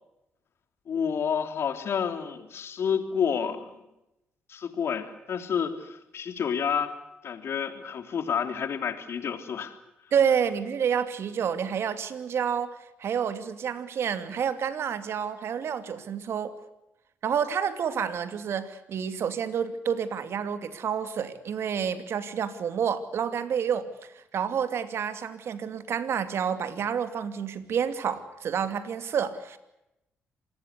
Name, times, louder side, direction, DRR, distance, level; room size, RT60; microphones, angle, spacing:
voice 1, 0.9-3.6 4.5-6.9 7.2-9.8, left 7 dB, 60° left, 8 dB, 3.3 m, -29 dB
voice 2, 10.1-16.5 17.2-29.6, right 7 dB, 65° right, 10 dB, 2.6 m, -29 dB
26.5 x 19.5 x 8.3 m, 0.89 s
supercardioid pair, 50°, 5 cm